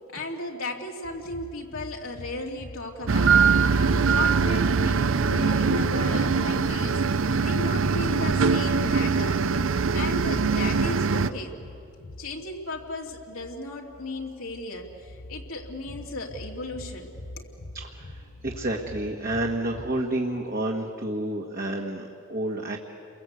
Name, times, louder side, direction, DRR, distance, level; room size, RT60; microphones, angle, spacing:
voice 1, 0.1-3.5 4.0-7.0 7.4-9.4 9.9-11.6 12.2-17.5, left 2 dB, 80° left, 0 dB, 2.7 m, -35 dB
sound 1, 1.0-19.9, left 1 dB, 65° left, 0.9 m, -44 dB
sound 2, 3.1-11.3, right 5 dB, 75° right, 0.7 m, -22 dB
voice 2, 17.7-22.8, right 1 dB, 45° right, -1 dB, 1.6 m, -30 dB
29.5 x 22.5 x 8.1 m, 2.5 s
head